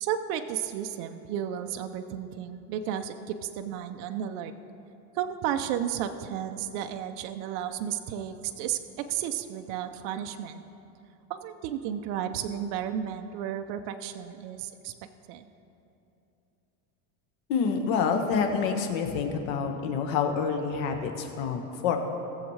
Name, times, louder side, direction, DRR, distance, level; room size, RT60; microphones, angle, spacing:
voice 1, 0.0-4.5 5.1-10.6 11.3-14.9 15.3-15.5, right 9 dB, 45° right, 7 dB, 0.5 m, -33 dB
voice 2, 17.5-22.0, left 6 dB, 70° left, 4 dB, 1.4 m, -27 dB
19.5 x 7.2 x 3.2 m, 2.9 s
supercardioid pair, 155°, 42 cm